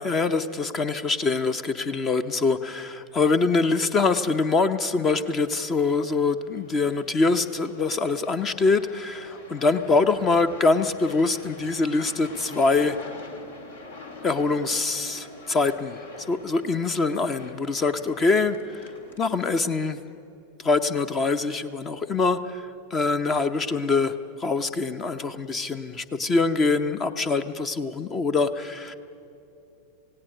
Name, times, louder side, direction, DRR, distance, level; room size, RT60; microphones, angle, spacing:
voice 1, 0.0-13.0 14.2-18.9 19.2-20.0 20.6-28.9, left 3 dB, 25° left, 12 dB, 0.7 m, -24 dB
sound 1, 5.6-19.7, left 3 dB, 65° left, 2.4 m, -45 dB
27.5 x 17.5 x 6.5 m, 2.8 s
figure-of-eight pair, 90°, 0 cm